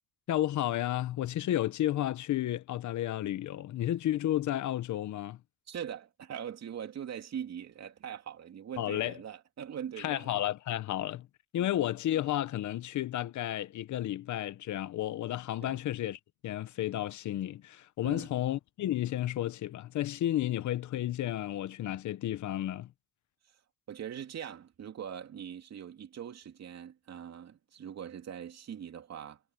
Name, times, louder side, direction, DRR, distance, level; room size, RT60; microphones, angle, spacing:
voice 1, 0.3-5.4 8.8-9.1 10.0-11.3 11.5-22.9, left 13 dB, 75° left, 1.1 m, -32 dB
voice 2, 5.7-10.4 11.5-11.7 15.6-15.8 18.0-18.3 23.9-29.4, right 9 dB, 60° right, 2.9 m, -42 dB
cardioid pair, 90°, 30 cm